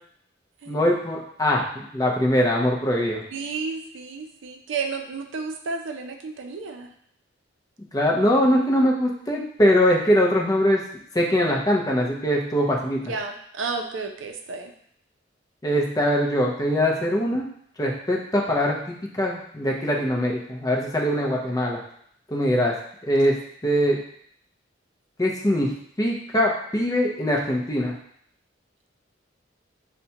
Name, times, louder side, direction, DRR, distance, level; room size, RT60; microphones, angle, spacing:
voice 1, 0.7-3.2 7.9-10.8 11.1-13.1 15.6-17.4 17.8-21.8 22.3-22.7 23.0-23.4 23.6-24.0 25.2-25.7 26.0-28.0, equal, 20° left, -1 dB, 0.5 m, -22 dB
voice 2, 3.3-6.9 13.1-14.7, right 4 dB, 75° right, 4 dB, 0.5 m, -32 dB
5.7 x 2.2 x 2.8 m, 0.66 s
head